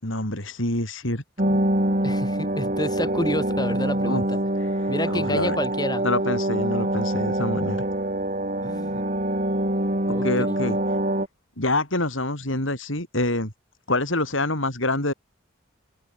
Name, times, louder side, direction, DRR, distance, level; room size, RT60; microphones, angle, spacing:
voice 1, 0.0-1.6 4.1-4.2 5.1-5.6 6.0-7.8 10.1-10.8 11.6-13.5 13.9-15.1, left 2 dB, 70° left, 7.2 m, -26 dB
sound 1, 1.4-11.3, right 1 dB, 35° right, 4.6 m, -25 dB
voice 2, 2.0-4.4 4.9-6.0 8.6-9.0 10.1-10.6, left 1 dB, 20° left, 7.4 m, -29 dB
head